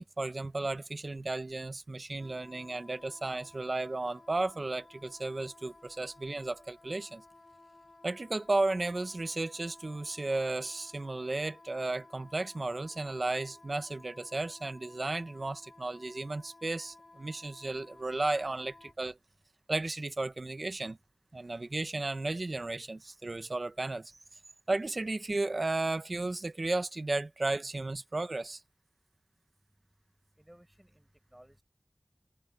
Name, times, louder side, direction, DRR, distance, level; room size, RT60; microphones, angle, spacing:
voice 1, 0.0-7.2 8.0-19.2 19.7-21.0 21.3-24.2 24.7-28.6, right 2 dB, 70° right, 1.1 m, -34 dB
Wind instrument woodwind instrument, 2.2-19.0, left 2 dB, 75° left, 5.3 m, -56 dB
voice 2, 30.4-31.6, equal, 15° right, 5.5 m, -58 dB
wide cardioid pair, 45°, 0 cm